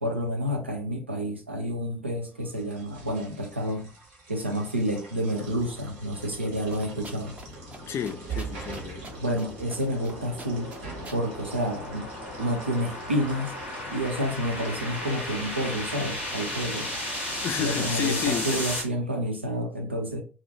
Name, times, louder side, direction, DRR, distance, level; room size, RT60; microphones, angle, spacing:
voice 1, 0.0-3.9 4.3-7.4 9.2-10.7 11.1-12.1 12.4-13.6 13.9-16.9 17.6-20.2, equal, 90° right, 0.3 m, -29 dB
sound 1, 2.3-15.9, right 5 dB, 70° right, 0.7 m, -44 dB
sound 2, 5.7-18.8, left 1 dB, 85° left, 0.6 m, -36 dB
sound 3, 6.7-7.5 7.7-7.8 8.1-9.5 9.7-10.1 10.4-11.2, right 2 dB, 20° right, 0.5 m, -44 dB
voice 2, 7.9-9.1 17.4-18.6, left 8 dB, 45° left, 0.4 m, -31 dB
2.3 x 2.1 x 2.7 m
figure-of-eight pair, 50°, 6 cm